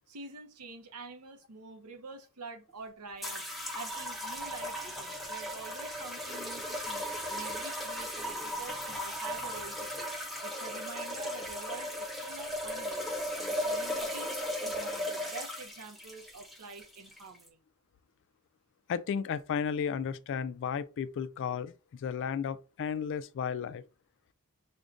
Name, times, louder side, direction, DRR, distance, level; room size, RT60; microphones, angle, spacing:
voice 1, 0.1-10.1 10.4-13.1 13.4-14.3 14.6-17.6, right 3 dB, 85° right, 0.8 m, -47 dB
sound 1, 3.2-17.5, equal, ahead, 0.6 m, -36 dB
voice 2, 18.9-21.7 22.0-23.8, left 7 dB, 55° left, 0.3 m, -33 dB
6.0 x 2.2 x 2.5 m
head